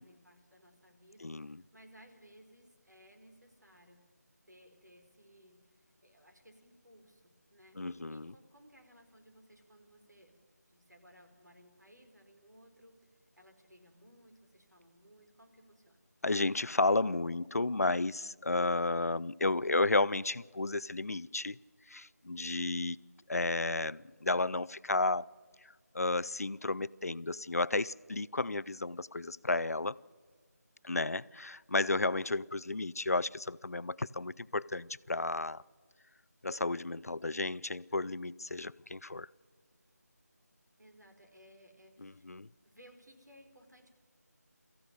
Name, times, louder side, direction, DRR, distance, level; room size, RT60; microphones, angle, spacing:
voice 1, 0.0-4.0 4.5-16.1 22.3-22.9 40.8-43.9, equal, 85° right, 4 dB, 4.5 m, -61 dB
voice 2, 1.2-1.6 7.8-8.3 16.2-21.6 21.9-23.0 23.3-25.3 25.9-30.0 30.8-35.6 36.4-39.3 42.0-42.5, left 2 dB, 60° left, 19 dB, 0.5 m, -32 dB
23.5 x 15.0 x 9.4 m, 1.5 s
figure-of-eight pair, 165°, 9 cm